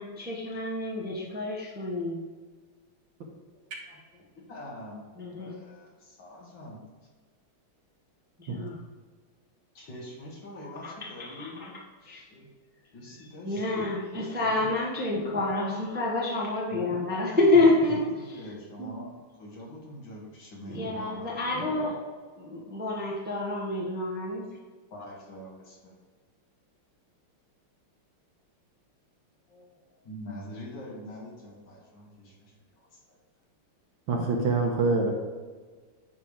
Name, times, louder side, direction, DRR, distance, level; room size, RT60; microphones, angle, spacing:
voice 1, 0.0-2.2 5.2-5.6 8.4-8.8 10.8-11.7 12.0-12.2 13.4-18.0 18.8-18.9 20.7-22.0 22.3-24.4, left 2 dB, 5° right, -5 dB, 0.9 m, -28 dB
voice 2, 3.9-5.1 5.4-6.8 9.7-11.8 12.3-12.5 12.9-13.9 14.3-14.7 16.7-21.3 24.9-26.0 29.5-32.5 32.9-33.2, left 1 dB, 60° left, -3 dB, 2.4 m, -44 dB
voice 3, 34.1-35.1, right 3 dB, 65° right, 1 dB, 1.8 m, -25 dB
9.7 x 3.5 x 4.9 m, 1.4 s
omnidirectional pair, 2.4 m